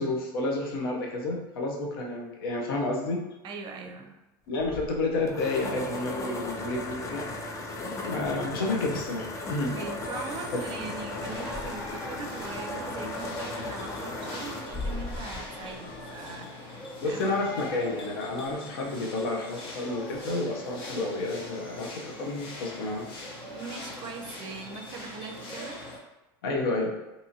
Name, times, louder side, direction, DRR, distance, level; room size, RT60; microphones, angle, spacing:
voice 1, 0.0-3.2 4.5-7.3 8.1-9.8 17.0-23.1 26.4-26.9, left 2 dB, 85° left, 0 dB, 0.6 m, -30 dB
voice 2, 3.4-4.2 9.7-17.4 23.5-25.8, right 4 dB, 45° right, 3 dB, 0.4 m, -41 dB
sound 1, 4.6-16.4, left 2 dB, 25° left, 0.4 m, -37 dB
sound 2, 10.0-26.0, left 1 dB, 45° left, 0.8 m, -41 dB
2.7 x 2.5 x 2.7 m, 1.0 s
supercardioid pair, 110°, 12 cm